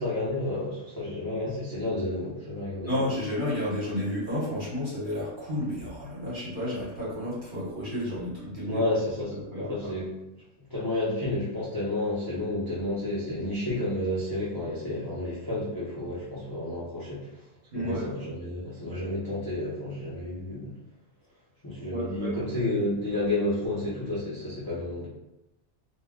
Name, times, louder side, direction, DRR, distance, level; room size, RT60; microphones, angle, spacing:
voice 1, 0.0-3.1 8.7-10.1 10.6-17.3 17.7-20.7 21.6-25.1, left 1 dB, 25° left, -9 dB, 0.5 m, -31 dB
voice 2, 2.8-8.8 9.3-9.7 17.7-18.1 21.9-22.3, left 1 dB, 45° right, -7 dB, 1.0 m, -31 dB
2.3 x 2.1 x 3.5 m, 0.94 s
omnidirectional pair, 1.2 m